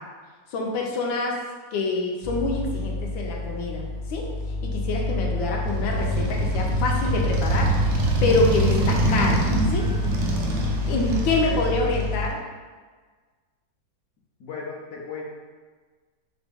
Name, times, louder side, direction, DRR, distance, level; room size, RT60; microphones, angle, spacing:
voice 1, 0.5-1.3 1.7-3.8 4.1-4.2 4.7-9.4 9.7-9.8 10.9-12.4, left 2 dB, 80° left, 0 dB, 1.4 m, -26 dB
sound 1, 2.2-12.3, left 3 dB, 40° left, 0.8 m, -28 dB
Motorcycle, 5.6-12.3, right 2 dB, 70° right, 0.8 m, -25 dB
voice 2, 11.2-11.6 14.4-15.2, left 4 dB, 65° left, -2 dB, 1.1 m, -36 dB
4.0 x 3.5 x 3.5 m, 1.5 s
omnidirectional pair, 2.1 m